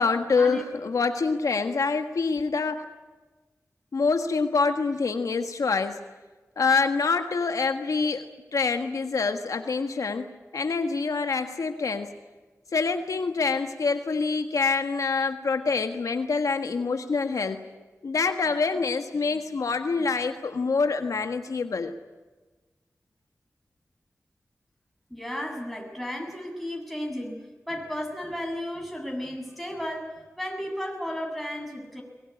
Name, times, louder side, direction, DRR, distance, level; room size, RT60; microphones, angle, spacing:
voice 1, 0.0-2.9 3.9-6.0 6.6-8.2 8.5-12.1 12.7-17.6 18.0-21.9, left 4 dB, 90° left, 7 dB, 1.6 m, -26 dB
voice 2, 25.1-27.4 27.7-30.1 30.4-32.0, equal, ahead, 2 dB, 7.2 m, -33 dB
22.5 x 21.0 x 9.9 m, 1.2 s
cardioid pair, 50°, 5 cm